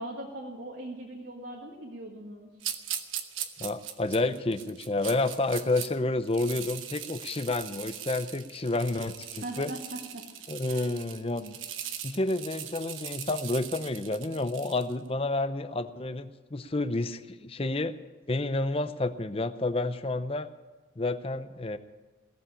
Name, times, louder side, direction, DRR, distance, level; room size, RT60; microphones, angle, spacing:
voice 1, 0.0-2.5 9.4-10.2 10.6-10.9, right 1 dB, 60° right, -2 dB, 1.7 m, -40 dB
sound 1, 2.6-5.9 6.2-14.9, right 10 dB, 85° right, 1.1 m, -40 dB
voice 2, 3.6-9.7 10.5-11.6 12.0-17.9 18.3-20.5 21.0-21.8, left 2 dB, 30° left, 11 dB, 0.6 m, -30 dB
17.5 x 7.6 x 9.8 m, 1.3 s
head